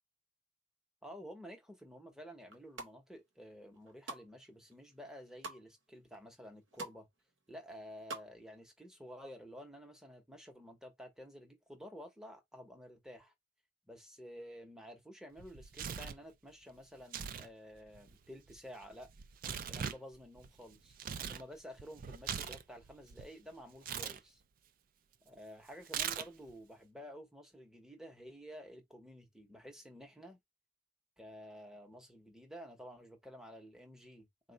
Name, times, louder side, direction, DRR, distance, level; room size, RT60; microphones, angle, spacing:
voice 1, 1.0-7.1 7.5-13.3 13.9-19.1 19.7-21.0 21.3-24.4 25.2-30.4 31.2-34.5, equal, 5° right, 0.7 m, -52 dB
sound 1, 2.5-2.9 3.5-4.3 4.7-5.6 6.1-6.2 6.4-7.0 7.3-8.3 8.6-8.7, right 3 dB, 70° right, 0.8 m, -46 dB
Tearing, 15.4-16.2 17.0-17.5 17.7-21.4 21.8-23.3 23.8-24.2 25.8-26.5, right 8 dB, 45° right, 0.3 m, -41 dB
4.1 x 2.1 x 3.8 m
head